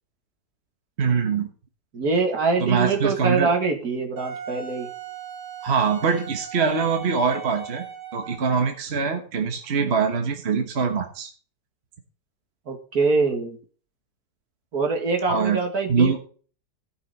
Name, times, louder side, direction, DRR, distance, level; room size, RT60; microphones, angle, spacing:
voice 1, 1.0-1.5 2.6-3.5 5.6-7.8 8.1-11.3 15.3-15.6 15.9-16.2, right 5 dB, 40° right, 4 dB, 1.4 m, -23 dB
voice 2, 1.9-4.9 12.7-13.6 14.7-16.2, right 4 dB, 60° right, 3 dB, 2.3 m, -24 dB
Wind instrument woodwind instrument, 4.2-8.7, right 7 dB, 80° right, 2.0 m, -38 dB
17.0 x 6.0 x 4.1 m, 0.41 s
omnidirectional pair, 1.8 m